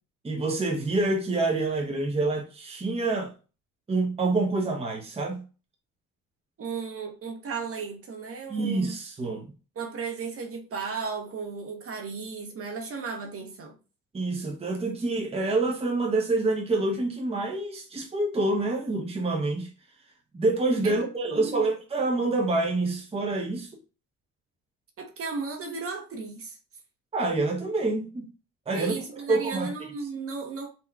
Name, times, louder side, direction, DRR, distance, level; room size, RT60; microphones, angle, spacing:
voice 1, 0.2-3.3 3.9-5.4 8.5-9.5 14.1-19.7 20.3-23.7 27.1-28.3 28.7-28.9 29.3-29.7, right 2 dB, 20° right, 0.8 m, -27 dB
voice 2, 6.6-9.0 9.8-13.8 20.8-21.0 21.2-21.7 25.0-26.6 28.7-30.7, right 5 dB, 45° right, 0.9 m, -35 dB
3.5 x 2.8 x 2.3 m
supercardioid pair, 70°, 32 cm